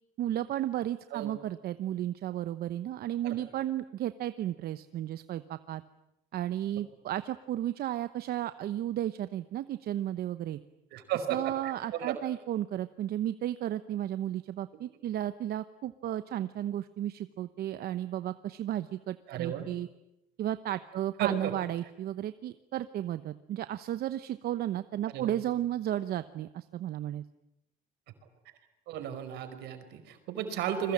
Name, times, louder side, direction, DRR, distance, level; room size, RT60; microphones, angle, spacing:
voice 1, 0.2-5.8 6.3-10.6 11.3-19.9 20.4-27.2, right 12 dB, 65° right, 12 dB, 1.0 m, -33 dB
voice 2, 10.9-12.2 19.3-19.6 21.2-21.5 25.0-25.4 28.9-30.9, right 10 dB, 85° right, 8 dB, 4.9 m, -34 dB
29.5 x 22.0 x 8.7 m, 0.85 s
cardioid pair, 110°, 17 cm